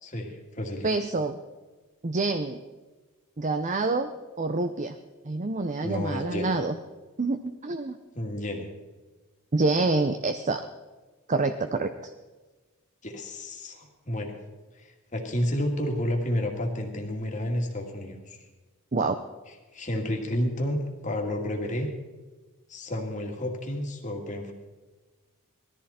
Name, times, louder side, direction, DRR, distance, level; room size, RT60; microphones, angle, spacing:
voice 1, 0.0-0.9 5.8-6.5 8.1-8.7 13.0-14.4 14.8-18.4 19.7-21.9 22.7-24.5, left 1 dB, 35° left, 2 dB, 2.2 m, -31 dB
voice 2, 0.8-1.4 2.0-2.6 3.4-4.1 4.4-5.0 5.2-6.8 7.2-8.0 9.5-10.6 11.3-12.1 18.9-19.2, right 3 dB, 35° right, 8 dB, 0.6 m, -27 dB
19.5 x 14.0 x 4.3 m, 1.2 s
head